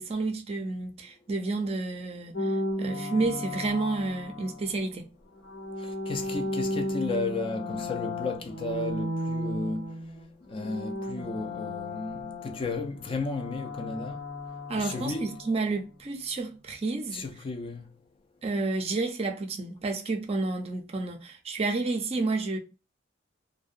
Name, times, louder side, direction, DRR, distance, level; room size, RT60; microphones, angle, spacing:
voice 1, 0.0-5.1 14.7-17.2 18.4-22.6, right 3 dB, 35° right, 0.4 m, -30 dB
sound 1, 2.3-4.8 5.4-10.3 10.5-15.5, left 1 dB, 85° left, 0.9 m, -34 dB
voice 2, 6.1-9.9 10.5-14.2 14.8-15.4 17.1-17.9, left 3 dB, 30° left, 0.3 m, -33 dB
2.6 x 2.1 x 2.4 m
head